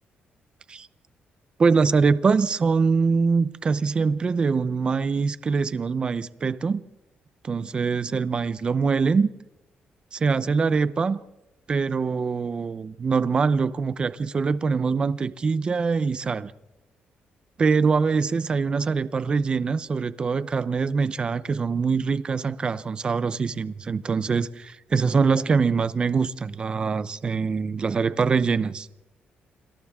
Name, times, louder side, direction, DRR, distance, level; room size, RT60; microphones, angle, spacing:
voice 1, 1.6-6.8 7.4-9.3 10.1-11.2 11.7-16.5 17.6-28.9, right 5 dB, 30° right, 0.7 m, -23 dB
30.0 x 26.0 x 3.7 m
wide cardioid pair, 170°, 3 cm